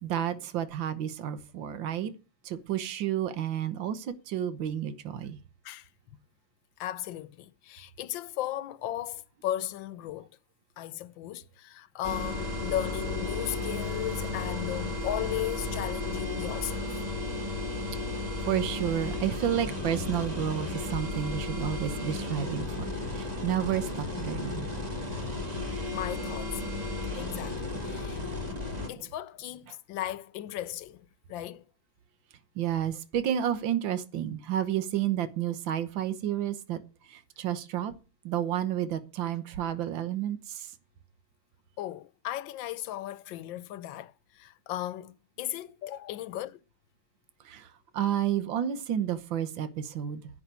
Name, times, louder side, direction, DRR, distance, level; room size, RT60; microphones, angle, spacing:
voice 1, 0.0-2.1 2.5-5.4 18.5-24.7 28.8-28.9 32.6-36.8 37.1-37.9 38.3-40.7 47.5-47.7 47.9-50.2, right 10 dB, 80° right, 1.8 m, -31 dB
voice 2, 6.8-10.3 10.8-16.9 25.9-26.6 27.1-28.2 28.9-31.6 41.8-46.6, left 13 dB, 80° left, 1.4 m, -36 dB
sound 1, 12.0-28.9, left 2 dB, 20° right, 2.2 m, -34 dB
10.0 x 5.5 x 8.4 m
omnidirectional pair, 2.1 m